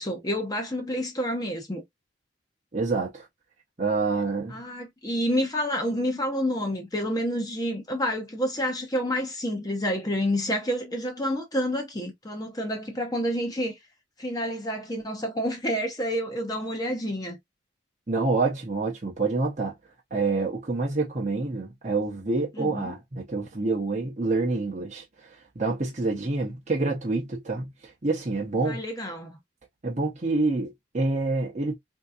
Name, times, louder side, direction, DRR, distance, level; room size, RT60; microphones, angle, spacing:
voice 1, 0.0-1.8 4.5-13.7 14.2-17.4 22.6-22.9 28.7-29.3, equal, 20° left, 0.8 m, -29 dB
voice 2, 2.7-3.3 3.8-4.5 18.1-19.7 20.1-28.8 29.8-31.7, right 3 dB, 35° right, 0.8 m, -27 dB
3.7 x 2.7 x 2.4 m
head